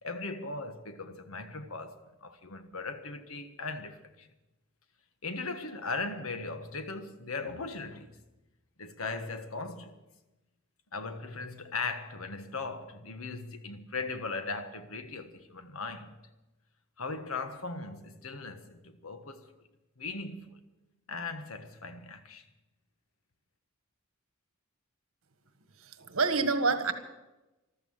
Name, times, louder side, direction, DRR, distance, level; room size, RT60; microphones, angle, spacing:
voice 1, 0.0-4.3 5.2-8.2 8.8-10.0 10.9-16.1 17.0-19.5 20.0-20.6 21.1-22.4, left 3 dB, 80° left, 1.4 m, -38 dB
voice 2, 25.8-26.9, right 4 dB, 75° right, 1.6 m, -27 dB
14.0 x 13.0 x 7.2 m
head